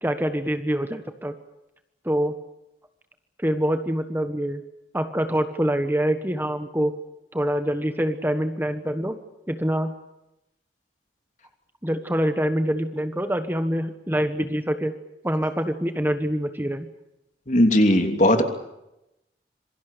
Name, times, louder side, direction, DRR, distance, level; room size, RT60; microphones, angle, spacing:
voice 1, 0.0-1.3 2.0-2.3 3.4-4.6 4.9-6.9 7.3-9.2 9.5-9.9 11.8-14.9 15.2-16.9, equal, 10° right, 8 dB, 1.3 m, -25 dB
voice 2, 17.5-18.4, left 1 dB, 45° left, 6 dB, 3.0 m, -18 dB
26.5 x 24.0 x 6.9 m, 0.89 s
head